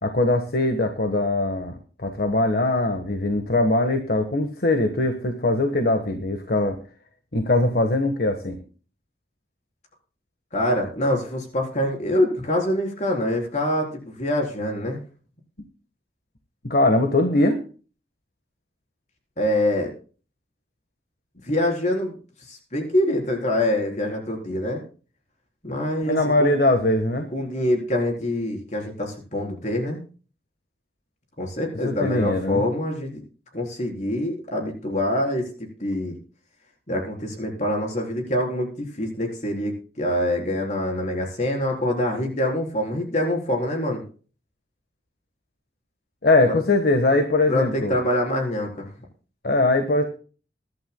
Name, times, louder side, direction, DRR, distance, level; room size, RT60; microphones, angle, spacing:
voice 1, 0.0-6.8 7.3-8.6 16.6-17.6 26.0-27.3 31.8-32.6 46.2-48.0 49.4-50.0, left 2 dB, 60° left, 6 dB, 1.3 m, -21 dB
voice 2, 10.5-15.0 19.4-19.9 21.4-22.1 22.5-24.8 25.6-26.5 27.3-30.0 31.4-33.2 33.5-35.4 35.8-36.1 36.9-44.0 46.5-46.6 47.5-48.9, left 1 dB, 40° left, 1 dB, 4.0 m, -25 dB
22.0 x 11.5 x 2.2 m, 0.38 s
head